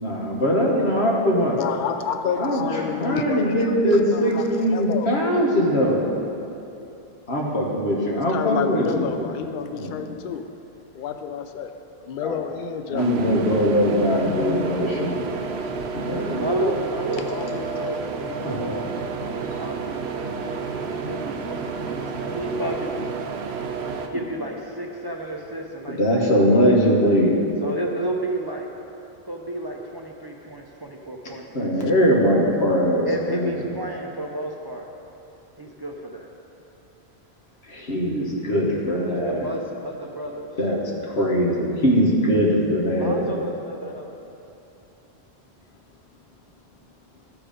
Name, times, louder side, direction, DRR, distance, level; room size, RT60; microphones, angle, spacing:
voice 1, 0.0-1.6 2.4-2.6 3.0-6.1 7.3-9.2 9.7-10.0 12.2-12.4 12.9-15.2 15.9-16.4 18.4-18.6 25.9-27.3 31.5-33.6 37.7-39.5 40.6-43.2, equal, 90° left, -2 dB, 1.6 m, -21 dB
voice 2, 1.6-5.1 6.8-6.9 8.2-10.4 10.9-11.7 12.0-13.1 17.7-17.8, left 7 dB, 60° left, 7 dB, 0.6 m, -29 dB
sound 1, 13.0-24.1, right 4 dB, 85° right, 0.9 m, -30 dB
voice 3, 16.3-18.9 19.2-20.0 20.6-22.9 24.1-27.0 27.5-28.8 29.3-32.0 33.1-34.9 35.6-36.3 39.1-40.5 42.9-44.3, right 1 dB, 35° right, 0 dB, 0.4 m, -32 dB
13.5 x 4.7 x 5.0 m, 2.8 s
omnidirectional pair, 1.1 m